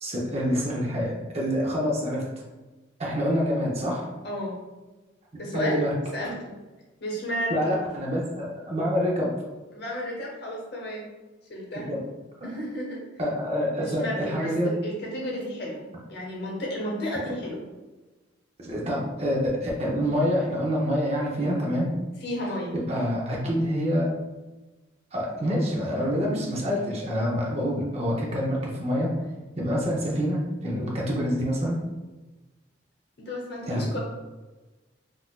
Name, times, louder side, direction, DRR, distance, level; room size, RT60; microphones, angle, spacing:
voice 1, 0.0-2.2 3.0-4.1 5.5-5.9 7.5-9.3 11.9-12.0 12.4-12.6 13.2-14.7 18.6-21.9 22.7-24.1 25.1-29.1 29.6-31.8 33.7-33.9, equal, 35° right, -3 dB, 0.6 m, -26 dB
voice 2, 4.2-4.6 5.4-6.6 7.0-7.8 9.7-11.1 11.5-12.0 12.4-13.1 13.8-15.8 16.1-17.7 22.2-22.7 33.3-34.0, equal, 55° left, -2 dB, 0.9 m, -32 dB
3.8 x 2.5 x 2.3 m, 1.2 s
head